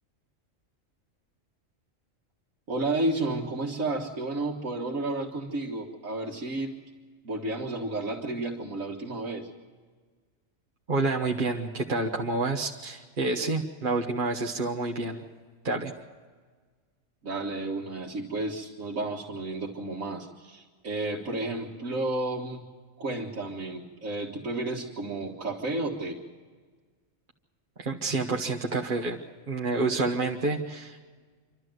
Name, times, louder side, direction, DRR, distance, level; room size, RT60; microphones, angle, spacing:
voice 1, 2.7-6.7 7.2-9.5 17.2-22.6 23.0-26.2, right 2 dB, 90° right, -2 dB, 2.2 m, -32 dB
voice 2, 10.9-15.3 15.6-15.9 27.8-29.2 29.5-31.0, right 3 dB, 40° right, 1 dB, 1.4 m, -28 dB
27.0 x 13.0 x 7.8 m, 1.5 s
omnidirectional pair, 1.3 m